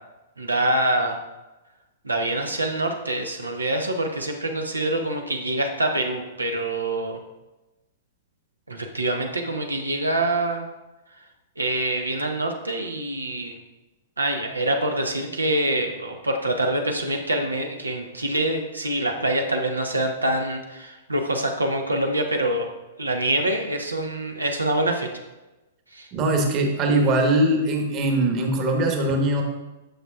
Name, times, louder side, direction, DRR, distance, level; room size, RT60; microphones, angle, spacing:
voice 1, 0.4-1.2 2.0-7.2 8.7-10.7 11.6-13.6 14.2-22.7 23.0-25.1 25.9-26.1, right 1 dB, 85° right, 3 dB, 0.8 m, -25 dB
voice 2, 26.1-29.4, right 1 dB, 35° right, 2 dB, 1.3 m, -21 dB
8.9 x 6.5 x 2.3 m, 1.1 s
figure-of-eight pair, 105°, 0 cm